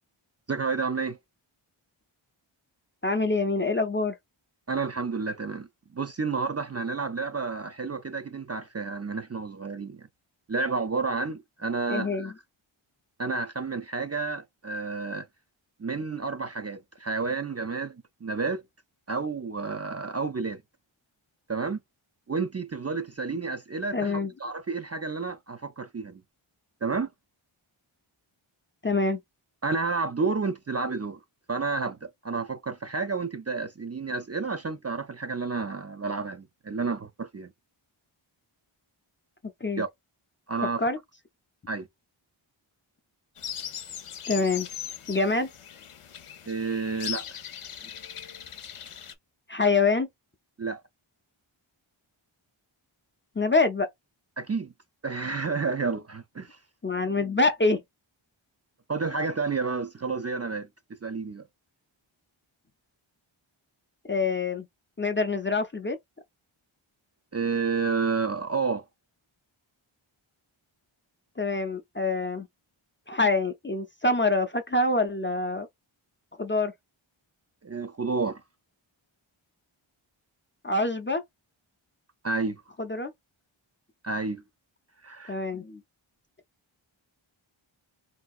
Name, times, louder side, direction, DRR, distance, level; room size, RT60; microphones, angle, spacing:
voice 1, 0.5-1.2 4.7-5.7 5.9-10.1 10.5-12.3 13.2-15.3 15.8-18.0 18.2-18.6 19.1-20.6 21.5-21.8 22.3-26.2 26.8-27.1 29.6-31.2 31.5-37.5 39.8-39.9 40.5-40.8 41.7-41.9 46.5-47.3 50.6-50.8 54.4-54.7 55.0-56.6 58.9-60.7 61.0-61.4 67.3-68.8 77.6-78.4 82.2-82.6 84.0-84.4 85.0-85.4, right 4 dB, 35° right, 0.4 m, -30 dB
voice 2, 3.0-4.2 11.9-12.3 23.9-24.3 28.8-29.2 39.6-39.8 40.8-41.0 44.3-44.7 45.1-45.5 49.5-50.1 53.4-53.9 56.8-57.8 64.1-64.7 65.0-66.0 71.4-72.5 73.1-75.7 76.4-76.7 80.6-81.2 82.8-83.1 85.3-85.8, left 3 dB, 25° left, 0.4 m, -25 dB
sound 1, 43.4-49.1, left 9 dB, 85° left, 0.6 m, -39 dB
3.3 x 2.7 x 2.3 m
wide cardioid pair, 50°, 50 cm